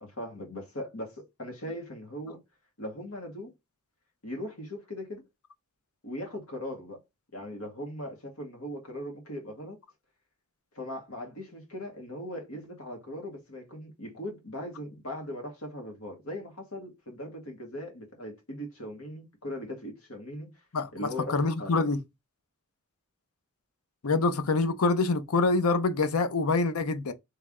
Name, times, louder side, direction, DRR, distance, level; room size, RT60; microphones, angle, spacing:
voice 1, 0.0-2.4 2.8-3.5 4.2-5.3 6.0-7.0 7.3-9.8 10.8-20.5 20.9-21.7, left 1 dB, 75° left, 1.8 m, -39 dB
voice 2, 20.7-22.0 24.0-27.1, left 3 dB, 90° left, 0.7 m, -26 dB
3.5 x 3.2 x 3.6 m
head